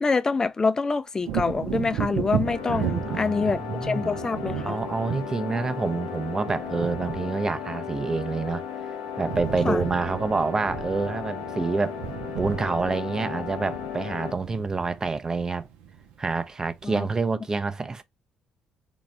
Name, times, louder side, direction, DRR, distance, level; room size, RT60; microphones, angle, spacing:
voice 1, 0.0-4.8 9.6-9.8 16.8-17.1, left 4 dB, 25° left, 0.5 m, -26 dB
Wind / Thunder, 1.2-8.8 9.1-16.3 16.7-16.9, right 9 dB, 70° right, 0.8 m, -35 dB
sound 1, 2.4-14.3, left 8 dB, 80° left, 0.7 m, -35 dB
voice 2, 2.7-4.2 4.6-8.9 9.2-12.0 12.4-15.7 16.2-18.0, right 4 dB, 25° right, 0.6 m, -27 dB
3.9 x 2.4 x 3.2 m
figure-of-eight pair, 45°, 2 cm